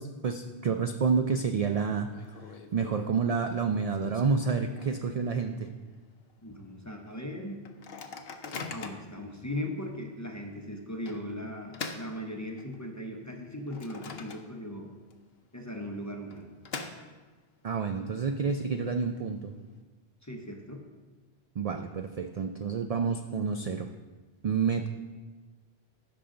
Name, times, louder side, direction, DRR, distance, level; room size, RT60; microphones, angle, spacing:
voice 1, 0.0-2.1 2.7-5.7 17.6-19.5 21.6-23.9 24.4-24.9, right 5 dB, 55° right, 6 dB, 0.4 m, -29 dB
Microwave oven, 0.9-1.4 1.7-1.8 2.1-5.2 5.6-5.7 6.0-6.3 6.8-6.9 7.6-9.2 9.8-9.9 11.1-12.9 13.3-14.8 15.1-15.2 16.1-17.5, left 4 dB, 65° left, 1.0 m, -43 dB
voice 2, 6.4-7.6 8.7-14.9 15.5-16.5 20.2-20.8, left 1 dB, 15° left, 2 dB, 0.8 m, -38 dB
15.5 x 5.8 x 3.8 m, 1.3 s
omnidirectional pair, 1.1 m